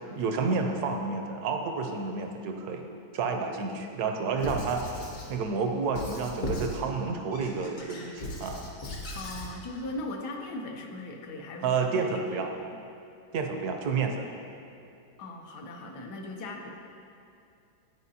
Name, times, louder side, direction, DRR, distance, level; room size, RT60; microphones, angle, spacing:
voice 1, 0.1-2.8 3.1-8.7 11.6-12.5 13.3-14.3, right 4 dB, 70° right, 4 dB, 1.1 m, -30 dB
Squeak / Writing, 4.4-5.3 5.9-6.8 7.3-9.5, equal, 55° left, 1.2 m, -37 dB
voice 2, 9.1-12.4 15.2-16.7, left 2 dB, 75° left, 2 dB, 1.3 m, -39 dB
11.0 x 4.7 x 2.7 m, 2.6 s
omnidirectional pair, 1.8 m